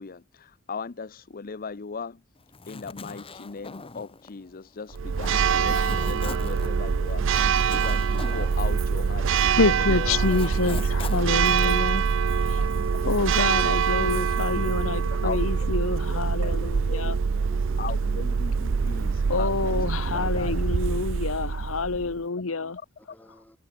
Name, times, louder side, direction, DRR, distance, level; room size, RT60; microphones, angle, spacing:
voice 1, 0.0-2.2 2.7-10.2 10.7-11.2 11.6-11.7 12.7-12.9 13.4-13.5 15.2-15.4 16.1-17.1 17.8-19.5 20.1-20.5 22.8-22.9, left 5 dB, 45° left, 0.6 m, -38 dB
Zipper (clothing), 2.4-9.5 9.8-11.9, left 4 dB, 25° left, 1.0 m, -41 dB
Church bell, 4.9-22.2, right 6 dB, 65° right, 0.5 m, -24 dB
voice 2, 9.5-12.0 12.5-12.6 13.0-17.2 19.3-22.8, left 3 dB, 75° left, 1.0 m, -27 dB
voice 3, 12.3-15.2 17.3-18.0 18.4-21.7 22.0-22.1 22.6-23.6, equal, 10° left, 5.3 m, -54 dB
head